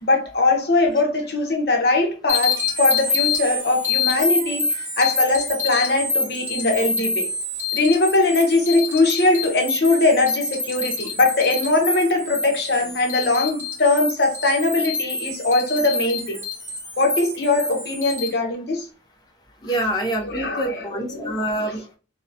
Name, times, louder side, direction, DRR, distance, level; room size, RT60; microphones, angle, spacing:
voice 1, 0.0-7.3 7.7-16.4 17.0-18.8 20.2-21.7, left 2 dB, 60° left, 0.7 m, -21 dB
sound 1, 2.3-18.3, left 3 dB, 10° right, 0.9 m, -27 dB
voice 2, 19.6-21.9, right 1 dB, 20° left, 0.5 m, -26 dB
2.7 x 2.0 x 2.5 m
head